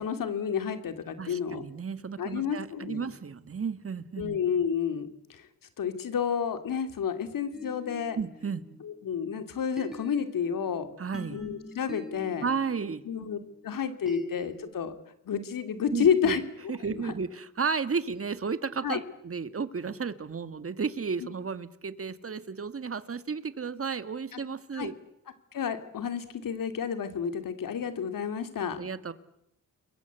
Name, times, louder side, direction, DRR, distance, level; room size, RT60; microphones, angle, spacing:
voice 1, 0.0-1.6 2.2-3.1 4.2-5.4 5.8-8.2 8.8-10.9 11.3-12.5 13.1-13.4 13.6-14.9 15.3-16.4 17.0-17.1 18.8-19.0 24.3-24.4 24.7-24.9 25.5-28.8, left 7 dB, 80° left, 9 dB, 3.0 m, -30 dB
voice 2, 1.2-4.4 8.2-8.6 11.0-11.4 12.4-13.0 15.9-16.4 16.7-24.9 28.8-29.1, right 5 dB, 45° right, 12 dB, 1.8 m, -33 dB
sound 1, 7.5-9.3 9.8-14.6, equal, ahead, 6.7 m, -45 dB
30.0 x 22.5 x 8.3 m, 0.78 s
cardioid pair, 70°, 32 cm